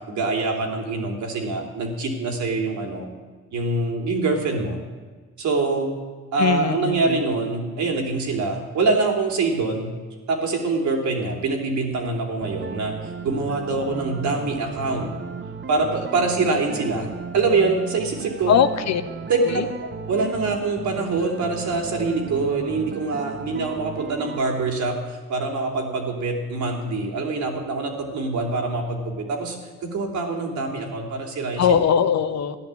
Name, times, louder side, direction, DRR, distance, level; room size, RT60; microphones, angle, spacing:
voice 1, 0.1-3.1 3.5-4.8 5.4-5.9 6.3-9.9 10.3-15.1 15.7-18.6 19.3-29.6 29.8-31.8, right 3 dB, 70° right, 2 dB, 3.3 m, -25 dB
voice 2, 6.4-7.2 18.5-19.0 19.5-19.7 31.6-32.6, left 8 dB, 60° left, 10 dB, 1.1 m, -20 dB
sound 1, 12.4-24.4, right 5 dB, 40° right, 1.2 m, -35 dB
14.0 x 11.0 x 8.4 m, 1.4 s
cardioid pair, 90°, 30 cm